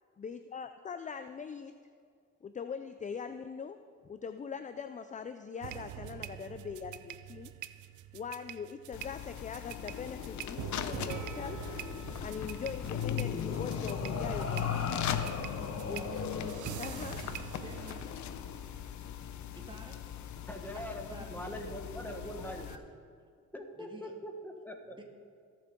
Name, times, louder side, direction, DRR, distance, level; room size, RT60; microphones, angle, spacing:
voice 1, 0.2-1.7 2.4-3.8 4.0-7.5 8.1-11.7 12.2-14.9 15.9-16.0 16.8-17.2, left 6 dB, 25° left, 9 dB, 0.4 m, -41 dB
sound 1, 5.6-18.0, right 13 dB, 75° right, 0.5 m, -45 dB
sound 2, 8.9-22.8, left 9 dB, 70° left, 0.8 m, -42 dB
sound 3, 9.7-18.6, left 7 dB, 55° left, 1.2 m, -38 dB
voice 2, 14.4-14.9 15.7-16.5 17.6-18.1 19.5-20.1 20.7-22.2 22.6-22.8 23.8-24.1 24.9-25.0, right 1 dB, 15° right, 1 dB, 2.1 m, -50 dB
voice 3, 20.5-22.7 23.5-25.0, equal, 5° left, 3 dB, 1.5 m, -42 dB
22.5 x 7.6 x 3.7 m, 2.2 s
cardioid pair, 90°, 30 cm